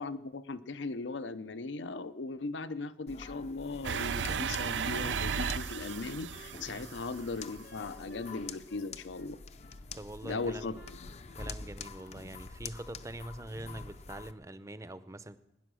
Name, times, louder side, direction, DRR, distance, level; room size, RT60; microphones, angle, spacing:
voice 1, 0.0-9.4 10.2-10.8, left 3 dB, 80° left, 14 dB, 0.6 m, -38 dB
sound 1, 3.1-14.3, left 4 dB, 35° left, 0.5 m, -47 dB
sound 2, 3.8-7.7, right 7 dB, 75° right, 0.4 m, -35 dB
Wind instrument woodwind instrument, 5.0-8.4 8.7-9.8 10.3-11.6 11.9-12.3, left 3 dB, 55° left, 1.0 m, -56 dB
voice 2, 9.9-10.8 11.3-15.4, right 1 dB, 15° right, 13 dB, 0.5 m, -44 dB
18.5 x 10.0 x 6.2 m, 0.98 s
head